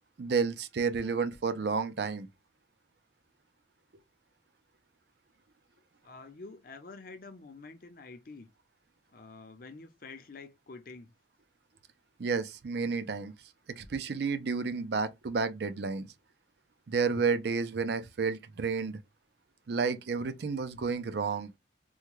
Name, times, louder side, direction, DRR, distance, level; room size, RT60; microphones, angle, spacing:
voice 1, 0.2-2.3 12.2-13.3 13.7-16.1 16.9-19.0 19.7-21.6, right 5 dB, 60° right, 0.4 m, -31 dB
voice 2, 6.0-8.5 9.1-11.1, left 3 dB, 45° left, 0.6 m, -48 dB
3.5 x 2.2 x 3.0 m
head